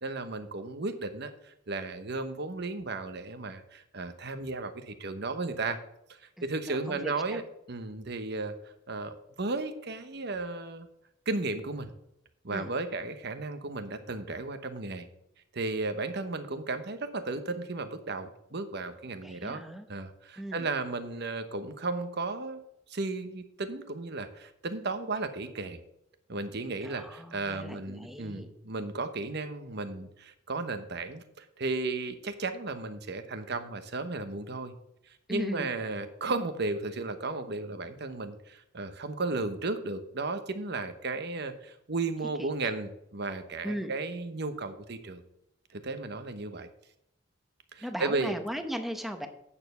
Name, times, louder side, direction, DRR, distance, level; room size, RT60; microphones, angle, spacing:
voice 1, 0.0-5.8 6.4-7.4 7.7-8.5 8.9-10.9 11.3-11.9 12.4-15.1 15.5-19.6 19.9-22.6 22.9-25.8 26.3-34.8 35.3-45.2 45.7-46.7 47.7-48.3, right 3 dB, 60° right, 9 dB, 1.0 m, -34 dB
voice 2, 6.4-7.4 12.5-12.7 19.2-19.9 20.4-20.7 26.8-28.5 35.3-35.7 42.4-42.5 43.6-43.9 47.8-49.3, equal, ahead, 6 dB, 0.9 m, -37 dB
8.8 x 6.9 x 5.6 m, 0.80 s
head